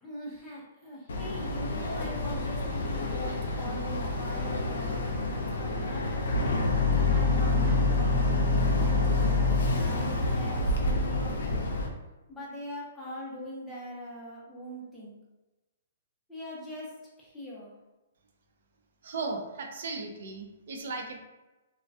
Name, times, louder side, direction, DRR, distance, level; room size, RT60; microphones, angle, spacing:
voice 1, 0.0-6.1 6.9-9.0 9.7-11.7 12.3-15.2 16.3-17.7, right 1 dB, 5° left, -8 dB, 0.6 m, -42 dB
Boat Water vehicle, 1.1-11.9, left 2 dB, 80° left, 0.5 m, -27 dB
voice 2, 19.0-21.2, right 3 dB, 60° right, 2 dB, 0.4 m, -36 dB
2.3 x 2.1 x 2.6 m, 1.1 s
hypercardioid pair, 155°, 0 cm